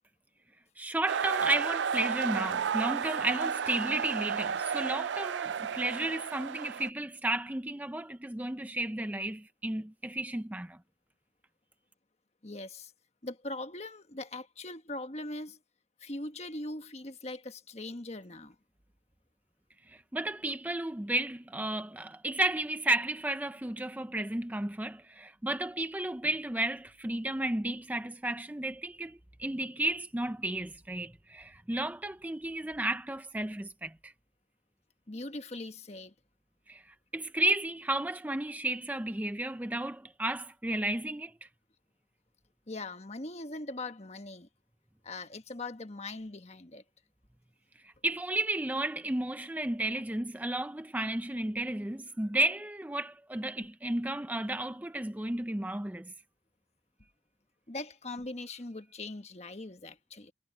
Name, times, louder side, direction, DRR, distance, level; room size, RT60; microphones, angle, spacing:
voice 1, 0.8-10.8 20.1-34.1 36.7-36.8 37.1-41.3 48.0-56.1, right 2 dB, 10° right, 0.5 m, -33 dB
sound 1, 1.1-6.9, right 7 dB, 85° right, 0.4 m, -32 dB
voice 2, 12.4-12.9 13.2-15.6 16.0-18.5 35.1-36.1 42.7-44.5 45.0-46.8 57.7-60.3, left 2 dB, 35° left, 1.3 m, -41 dB
head